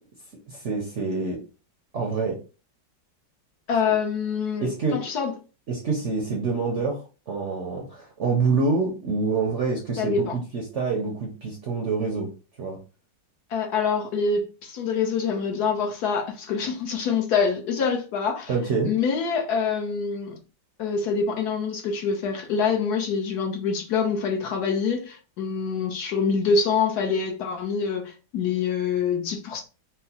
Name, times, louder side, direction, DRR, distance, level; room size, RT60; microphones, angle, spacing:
voice 1, 0.5-1.4 1.9-2.3 4.6-5.0 5.7-12.3 12.6-12.8 18.5-18.9, right 4 dB, 60° right, 0.8 m, -26 dB
voice 2, 3.7-5.3 10.0-10.4 13.5-18.5 18.8-20.4 20.8-29.6, left 5 dB, 65° left, 1.1 m, -25 dB
4.6 x 2.0 x 2.8 m
omnidirectional pair, 2.0 m